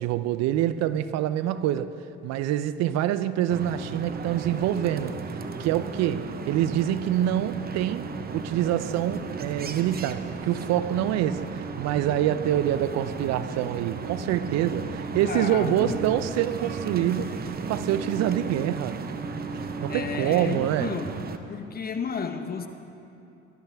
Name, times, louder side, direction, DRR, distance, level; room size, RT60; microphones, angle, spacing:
voice 1, 0.0-1.9 2.2-5.2 5.6-17.3 17.7-19.0 19.8-20.9, right 11 dB, 60° right, 0.5 m, -26 dB
sound 1, 3.5-21.4, right 4 dB, 30° right, 0.9 m, -35 dB
voice 2, 15.2-16.0 19.9-21.1 21.5-22.7, left 6 dB, 30° left, 1.0 m, -32 dB
18.0 x 12.5 x 3.5 m
supercardioid pair, 80°, 29 cm